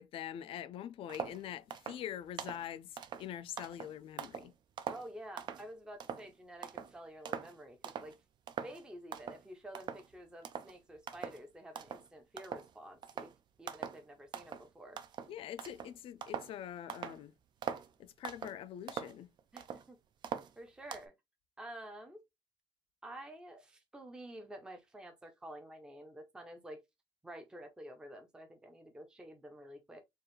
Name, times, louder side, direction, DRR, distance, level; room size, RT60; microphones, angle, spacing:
voice 1, 0.0-2.9 3.2-4.5 15.3-17.3 18.0-19.3, left 10 dB, 65° left, 0.4 m, -44 dB
sound 1, 1.1-1.4 1.7-2.0 2.4-2.7 3.0-4.5 4.8-5.7 6.0-6.3 6.6-6.9 7.3-7.6 7.8-8.2 8.5-8.8 9.1-9.4 9.7-10.1 10.4-10.7 11.1-11.4 11.8-12.1 12.4-12.7 13.0-13.3 13.7-14.0 14.3-14.7 15.0-16.5 16.9-17.2 17.6-17.9 18.2-18.6 18.9-19.9 20.2-21.0, right 8 dB, 45° right, 0.5 m, -42 dB
voice 2, 4.9-8.2 8.6-13.3 13.6-15.0 19.5-20.0 20.6-21.1 21.6-22.2 23.0-26.8 27.2-30.0, right 1 dB, 10° right, 0.6 m, -50 dB
4.6 x 2.5 x 3.1 m
cardioid pair, 180°, 10 cm